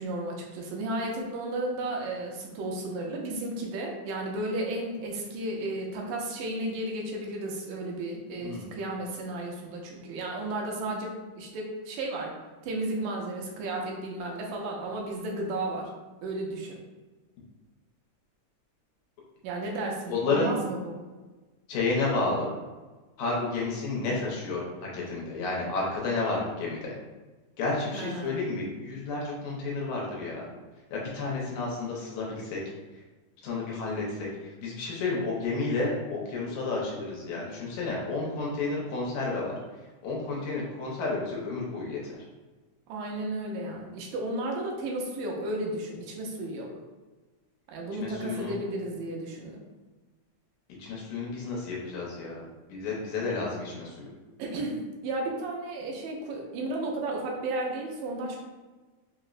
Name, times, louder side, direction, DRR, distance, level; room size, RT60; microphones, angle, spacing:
voice 1, 0.0-12.3 12.6-15.9 16.2-16.8 19.4-21.0 27.9-28.5 42.9-46.7 47.7-49.6 54.4-58.4, right 2 dB, 85° right, -1 dB, 2.2 m, -33 dB
voice 2, 20.1-20.5 21.7-22.5 23.2-24.6 24.9-26.9 27.6-30.5 30.9-32.6 33.4-39.6 40.0-42.1 48.0-48.6 50.8-52.4 52.7-54.1, left 3 dB, 75° left, -3 dB, 2.0 m, -31 dB
5.3 x 2.0 x 2.4 m, 1.3 s
omnidirectional pair, 3.7 m